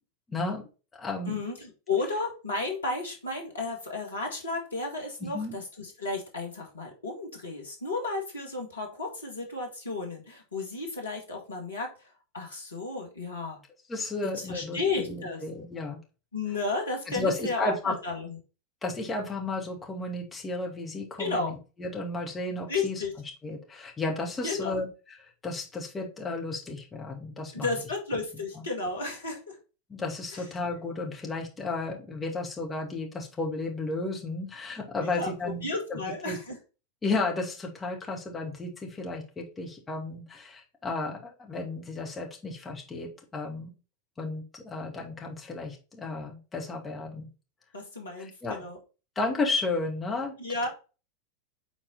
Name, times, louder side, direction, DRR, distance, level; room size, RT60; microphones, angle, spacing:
voice 1, 0.3-0.6 1.0-1.4 5.2-5.6 13.9-16.0 17.1-17.9 18.8-23.0 23.4-24.9 25.2-27.7 28.6-28.7 29.9-36.0 36.3-36.4 37.0-43.7 44.2-47.3 48.2-48.6 49.2-50.3, left 3 dB, 15° left, 0 dB, 2.1 m, -33 dB
voice 2, 1.3-13.6 14.4-15.4 16.3-18.4 21.2-21.5 22.7-23.1 24.4-24.8 27.5-29.6 30.3-30.4 35.0-35.3 35.6-36.6 47.7-48.8 50.4-50.7, left 3 dB, 75° left, 0 dB, 2.0 m, -33 dB
7.2 x 4.2 x 4.0 m, 0.32 s
figure-of-eight pair, 90°, 0 cm